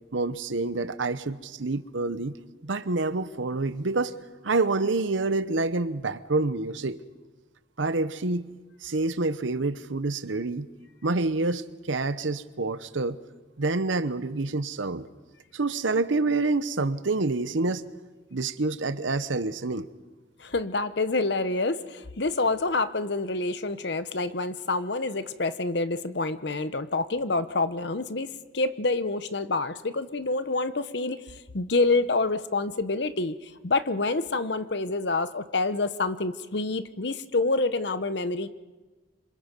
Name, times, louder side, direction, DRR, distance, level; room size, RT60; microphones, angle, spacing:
voice 1, 0.1-2.4 2.6-4.2 4.4-7.0 7.8-8.5 8.8-10.7 11.0-13.2 13.6-15.1 15.5-17.8 18.3-19.9, right 3 dB, 80° right, 14 dB, 0.9 m, -27 dB
voice 2, 20.4-38.5, left 3 dB, 60° left, 12 dB, 0.9 m, -27 dB
26.5 x 25.5 x 5.3 m, 1.3 s
head